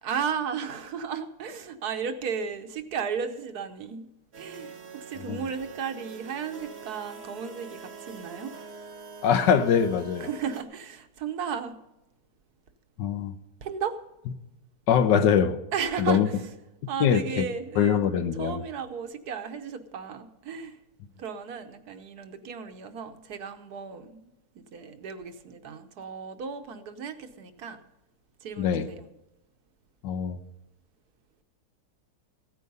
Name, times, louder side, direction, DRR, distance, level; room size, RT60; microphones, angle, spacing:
voice 1, 0.0-4.1 4.4-8.6 10.2-11.7 13.6-14.0 15.7-16.5 16.9-18.0 18.3-20.8 21.2-27.8 28.4-29.1, right 6 dB, 65° right, 1.4 m, -34 dB
sound 1, 4.3-10.6, right 5 dB, 40° right, 1.2 m, -44 dB
voice 2, 9.2-10.3 13.0-13.3 14.9-15.6 16.0-16.3 17.0-17.4 17.8-18.6 28.6-28.9 30.0-30.4, left 8 dB, 80° left, 1.5 m, -23 dB
15.0 x 9.4 x 5.4 m
omnidirectional pair, 1.9 m